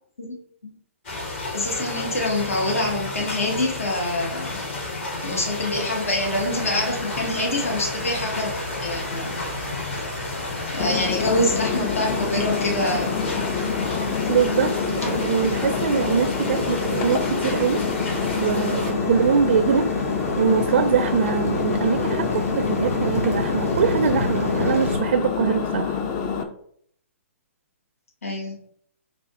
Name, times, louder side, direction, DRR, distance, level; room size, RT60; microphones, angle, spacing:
sound 1, 1.0-18.9, left 2 dB, 50° left, 1.5 m, -32 dB
voice 1, 1.5-4.8 5.2-8.5 8.8-9.4 10.7-13.3 28.2-28.6, left 1 dB, 75° left, 0 dB, 1.2 m, -25 dB
sound 2, 6.3-25.0, left 1 dB, 90° left, 1.7 m, -31 dB
Engine, 10.8-26.4, left 6 dB, 30° left, 0.5 m, -27 dB
voice 2, 14.3-14.7 15.1-17.8 18.3-19.9 20.3-25.9, right 7 dB, 55° right, 8 dB, 0.4 m, -23 dB
4.8 x 2.5 x 3.7 m, 0.65 s
figure-of-eight pair, 125°, 8 cm